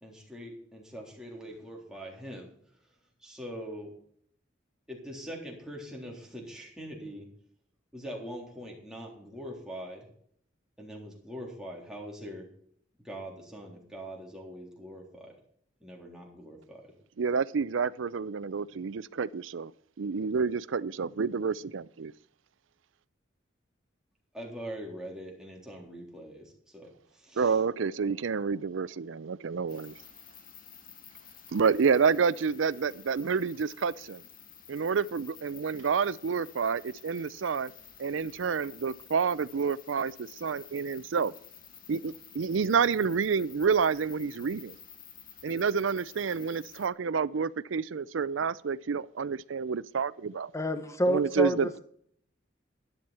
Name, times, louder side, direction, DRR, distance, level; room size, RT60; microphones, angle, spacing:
voice 1, 0.0-2.5 3.2-3.9 4.9-7.3 7.9-10.1 10.8-12.5 13.0-15.3 15.8-16.8 24.3-27.6, equal, 5° right, 3.6 m, -43 dB
voice 2, 17.2-19.7 20.0-22.1 27.4-29.9 31.5-34.2 34.7-37.7 38.0-41.3 41.9-44.8 45.4-50.5 51.1-51.7, right 5 dB, 80° right, 0.5 m, -29 dB
sound 1, 29.7-46.9, left 8 dB, 50° left, 1.7 m, -51 dB
voice 3, 50.5-51.8, equal, 15° left, 1.2 m, -28 dB
12.5 x 11.0 x 4.4 m
head